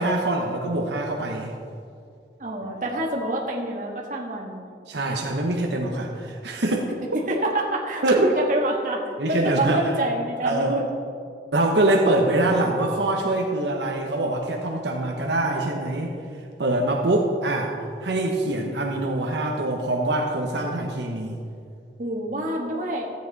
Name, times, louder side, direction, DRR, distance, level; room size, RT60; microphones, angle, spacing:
voice 1, 0.0-1.5 4.9-6.8 8.0-8.3 9.2-9.8 10.4-10.7 11.5-16.1 16.6-17.7 18.0-21.4, right 2 dB, 80° right, 1 dB, 1.0 m, -24 dB
voice 2, 2.4-5.0 7.1-9.0 9.3-10.9 22.0-23.1, right 1 dB, 45° right, -1 dB, 1.5 m, -27 dB
13.5 x 8.5 x 4.0 m, 2.3 s
head